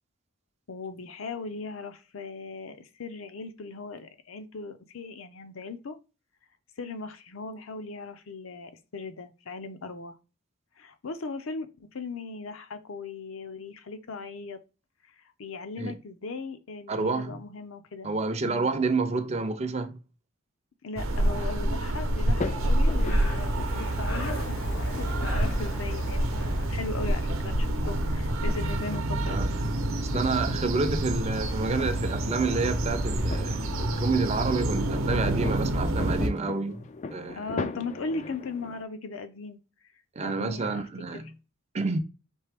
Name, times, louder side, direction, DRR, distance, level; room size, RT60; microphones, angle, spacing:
voice 1, 0.7-6.0 6.8-10.2 10.8-11.7 11.9-14.6 15.2-18.1 18.4-18.8 20.8-29.4 37.4-39.6 40.2-40.8 41.1-41.2, left 3 dB, 70° left, 0.6 m, -38 dB
voice 2, 16.9-17.4 18.0-20.0 29.3-29.5 30.0-37.4 40.2-41.3 41.7-42.0, right 3 dB, 30° right, 0.5 m, -29 dB
sound 1, 21.0-36.3, right 1 dB, 70° right, 0.8 m, -28 dB
sound 2, 21.1-38.8, left 4 dB, 35° left, 0.3 m, -42 dB
Breathing, 22.7-27.7, equal, 90° left, 2.6 m, -36 dB
4.5 x 3.2 x 3.4 m
head